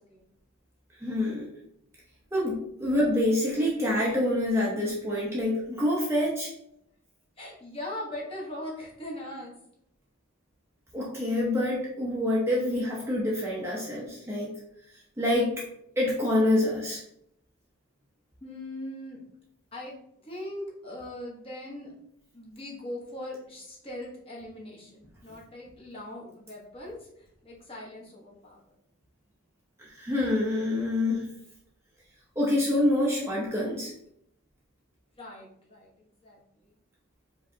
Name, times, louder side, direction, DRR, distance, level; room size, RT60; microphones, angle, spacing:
voice 1, 1.0-1.5 2.3-6.5 10.9-14.5 15.2-15.6 16.0-17.0 29.8-31.3 32.4-33.9, left 1 dB, 10° right, -5 dB, 0.7 m, -26 dB
voice 2, 7.4-9.5 18.4-19.2 19.7-20.0 20.2-21.9 22.3-27.1 27.4-28.6 35.2-35.9 36.2-36.7, left 1 dB, 25° left, -4 dB, 1.1 m, -40 dB
5.0 x 3.2 x 2.8 m, 0.74 s
head